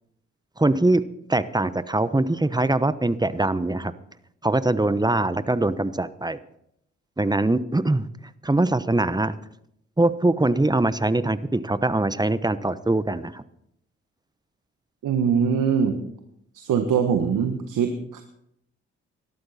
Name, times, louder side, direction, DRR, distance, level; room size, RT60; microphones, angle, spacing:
voice 1, 0.6-1.0 1.3-3.9 4.4-6.4 7.2-8.1 8.4-9.4 10.0-13.4, right 2 dB, 10° right, 14 dB, 1.0 m, -22 dB
voice 2, 15.0-16.0 16.5-18.2, right 7 dB, 70° right, 7 dB, 1.5 m, -22 dB
19.5 x 13.0 x 4.3 m, 0.75 s
hypercardioid pair, 40°, 33 cm